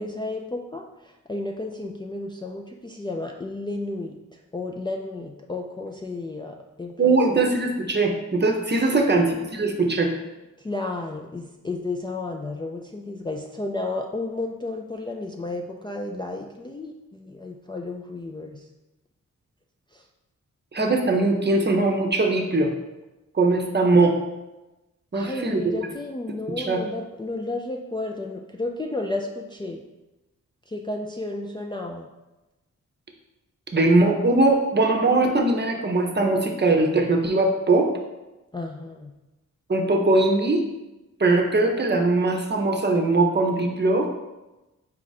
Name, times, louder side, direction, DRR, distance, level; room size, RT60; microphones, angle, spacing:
voice 1, 0.0-7.2 8.8-9.2 10.6-18.6 19.9-20.0 25.1-29.8 30.7-32.1 38.5-39.1, left 2 dB, 15° left, 0 dB, 0.3 m, -32 dB
voice 2, 7.0-10.1 20.7-22.7 23.3-24.2 25.1-25.6 26.6-26.8 33.7-37.9 39.7-40.6 41.2-44.1, right 2 dB, 35° right, 2 dB, 0.7 m, -21 dB
4.2 x 2.5 x 4.0 m, 1.0 s
cardioid pair, 45°, 32 cm